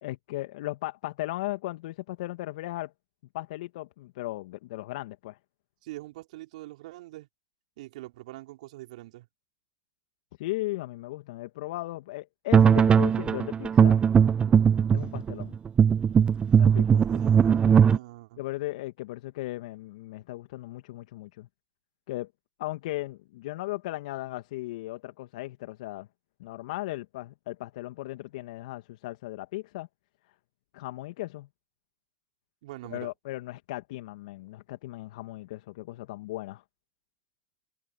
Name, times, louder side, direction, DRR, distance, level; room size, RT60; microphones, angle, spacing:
voice 1, 0.0-2.9 3.3-5.4 10.4-14.0 14.9-15.6 16.6-17.1 18.4-21.5 22.1-22.3 22.6-26.1 26.4-29.9 30.7-31.5 32.9-36.6, left 18 dB, 70° left, 1.8 m, -36 dB
voice 2, 5.8-7.3 7.8-9.3 14.5-14.7 16.9-18.4 32.6-33.1, right 17 dB, 70° right, 4.7 m, -44 dB
sound 1, 12.5-18.0, right 7 dB, 25° right, 0.5 m, -20 dB
hypercardioid pair, 90°, 4 cm